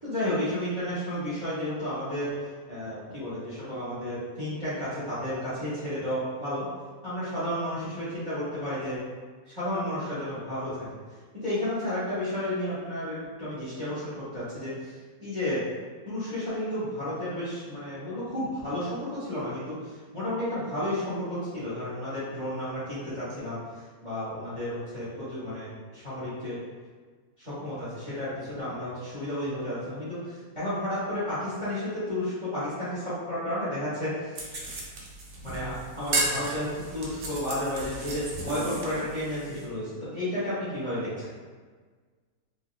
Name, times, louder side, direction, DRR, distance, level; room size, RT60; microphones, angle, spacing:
voice 1, 0.0-2.4 2.7-6.6 7.0-9.0 9.4-10.9 11.3-14.9 15.2-15.6 16.1-23.6 24.0-26.6 27.4-34.3 35.4-41.3, left 1 dB, 20° right, -12 dB, 1.1 m, -32 dB
sound 1, 34.3-39.6, right 2 dB, 70° right, 0.5 m, -34 dB
3.9 x 2.9 x 2.3 m, 1.5 s
omnidirectional pair, 1.8 m